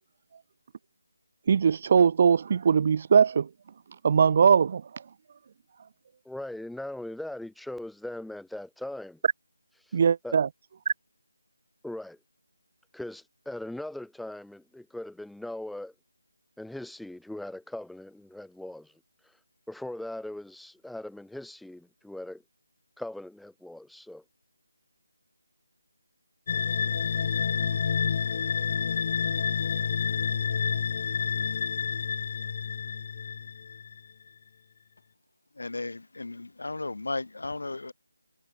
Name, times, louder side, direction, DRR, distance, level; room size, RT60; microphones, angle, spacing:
voice 1, 1.5-3.5 4.0-4.8 9.9-10.5 10.9-11.0, right 6 dB, 40° right, 0.3 m, -21 dB
voice 2, 6.3-9.2 9.9-10.0 10.2-10.4 11.8-12.2 12.9-15.9 16.6-18.9 19.7-22.4 23.0-24.2, left 1 dB, ahead, 2.2 m, -39 dB
sound 1, 26.5-34.0, left 7 dB, 35° left, 0.7 m, -29 dB
voice 3, 35.6-37.9, left 2 dB, 70° left, 0.3 m, -35 dB
figure-of-eight pair, 160°, 0 cm